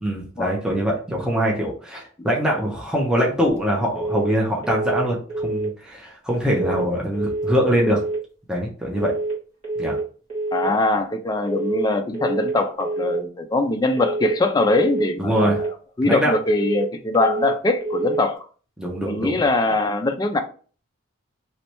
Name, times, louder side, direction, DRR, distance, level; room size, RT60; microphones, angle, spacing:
voice 1, 0.0-8.0 8.5-9.1 9.8-10.0 15.2-15.6 16.0-16.3 18.8-19.4, equal, 5° right, 0.7 m, -23 dB
sound 1, 4.0-4.4 4.6-5.0 5.3-5.7 6.5-6.9 7.1-7.5 7.8-8.2 9.0-9.4 9.6-10.0 10.3-10.7 11.5-11.9 12.1-12.5 12.8-13.2 14.0-14.4 14.6-15.0 15.3-15.7 16.5-16.9 17.1-17.5 17.8-18.2, right 2 dB, 30° right, 1.7 m, -27 dB
voice 2, 10.5-15.7 16.0-18.5 19.0-20.4, left 2 dB, 20° left, 0.4 m, -22 dB
3.2 x 3.1 x 2.9 m
head